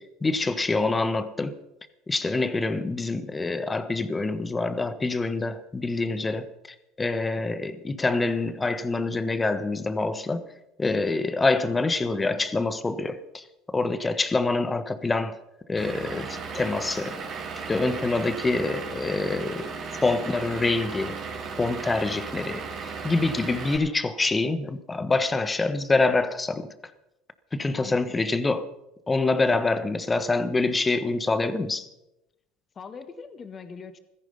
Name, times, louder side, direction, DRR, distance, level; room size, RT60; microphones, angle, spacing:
voice 1, 0.0-1.6 2.1-6.5 7.0-10.4 10.8-13.4 13.7-15.4 15.7-17.2 17.7-19.7 20.0-21.2 21.6-26.7 27.5-28.7 29.1-31.9, left 3 dB, 20° left, 1.3 m, -26 dB
Vehicle / Engine, 15.8-23.8, right 5 dB, 45° right, 4.2 m, -36 dB
voice 2, 27.7-28.2 32.7-34.0, left 5 dB, 35° left, 1.7 m, -42 dB
16.0 x 14.0 x 5.6 m
supercardioid pair, 90°, 0 cm